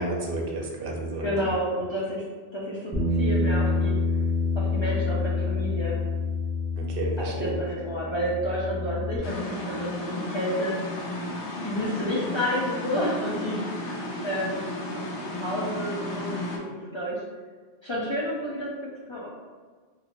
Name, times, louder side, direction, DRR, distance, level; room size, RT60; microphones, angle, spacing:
voice 1, 0.0-1.3 6.8-7.5, right 2 dB, 60° right, -1 dB, 0.8 m, -31 dB
voice 2, 1.2-2.2 2.5-4.0 4.6-6.0 7.2-11.1 11.6-14.6 14.9-15.0 15.3-16.4 16.9-17.2 17.8-18.7 19.1-19.3, equal, 45° left, -6 dB, 0.3 m, -30 dB
Bass guitar, 2.9-9.2, left 3 dB, 15° right, 0.6 m, -27 dB
sound 1, 9.2-16.6, left 2 dB, 85° left, 0.9 m, -34 dB
2.9 x 2.4 x 2.9 m, 1.5 s
omnidirectional pair, 1.1 m